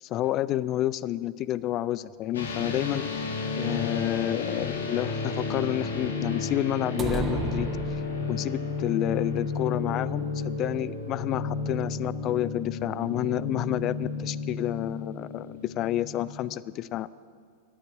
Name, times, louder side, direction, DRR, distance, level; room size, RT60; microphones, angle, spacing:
voice 1, 0.0-3.0 3.6-8.0 8.3-17.1, left 13 dB, 35° left, 19 dB, 0.3 m, -29 dB
sound 1, 2.3-16.5, left 4 dB, 65° left, 1.5 m, -32 dB
sound 2, 7.0-8.6, right 4 dB, 20° right, 0.7 m, -32 dB
11.5 x 8.4 x 9.9 m, 2.2 s
figure-of-eight pair, 90°, 0 cm